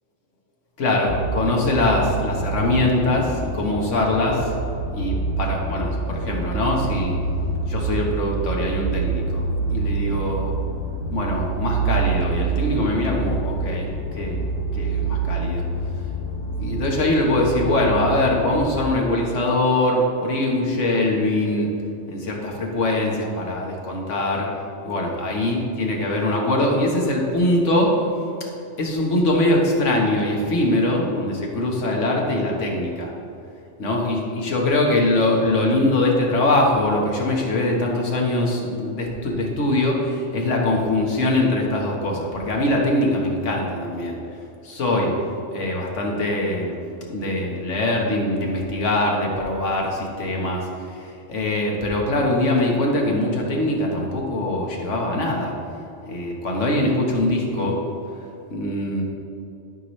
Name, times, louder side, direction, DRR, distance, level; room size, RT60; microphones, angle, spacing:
voice 1, 0.8-4.5 4.9-7.2 7.7-10.5 11.1-14.5 14.7-15.6 16.6-21.7 22.1-24.5 24.8-28.0 28.8-33.1 33.8-44.2 44.6-45.2 45.5-46.8 47.1-55.5 56.1-57.8 58.5-59.0, left 1 dB, 90° left, -1 dB, 1.6 m, -22 dB
sound 1, 1.1-18.9, right 4 dB, 35° left, 0.5 m, -27 dB
12.5 x 5.8 x 3.2 m, 2.6 s
omnidirectional pair, 1.2 m